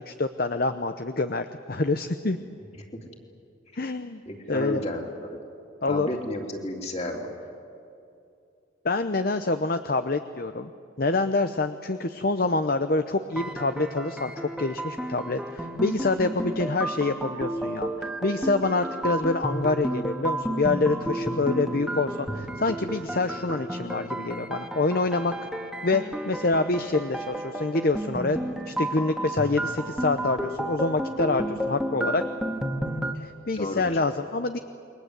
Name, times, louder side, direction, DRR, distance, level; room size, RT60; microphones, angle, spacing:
voice 1, 0.0-2.4 3.7-4.2 4.5-4.8 5.8-6.1 8.8-10.7 11.0-14.3 14.6-25.3 25.8-28.4 28.7-32.2 33.1-34.6, left 3 dB, 50° left, 9 dB, 0.8 m, -26 dB
voice 2, 4.2-5.4 5.9-7.3 33.6-34.0, left 1 dB, 30° left, 1 dB, 3.3 m, -32 dB
sound 1, 13.3-33.1, right 1 dB, 5° right, 1.6 m, -32 dB
28.5 x 23.0 x 8.2 m, 2.6 s
head